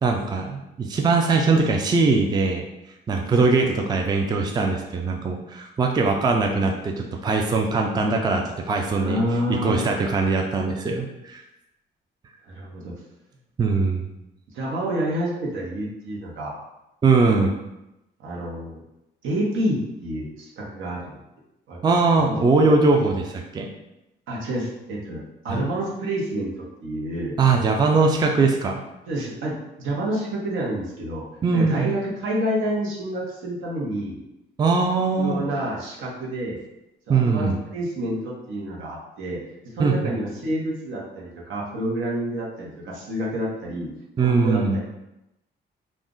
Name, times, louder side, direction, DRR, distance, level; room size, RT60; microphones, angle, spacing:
voice 1, 0.0-2.6 3.1-9.2 9.5-11.4 13.6-14.1 17.0-17.6 21.8-23.7 25.5-25.7 27.4-28.8 31.4-31.9 34.6-35.5 37.1-37.6 39.8-40.2 44.2-44.8, right 4 dB, 20° right, 2 dB, 0.4 m, -21 dB
voice 2, 8.9-9.8 12.5-12.9 14.5-16.6 18.2-18.8 19.2-21.2 21.7-21.8 22.2-22.4 24.3-27.4 29.1-31.3 31.5-34.2 35.2-36.6 37.1-39.4 39.7-43.9 44.2-44.8, right 1 dB, 80° right, -4 dB, 0.9 m, -28 dB
2.4 x 2.1 x 3.6 m, 0.91 s
cardioid pair, 90°, 20 cm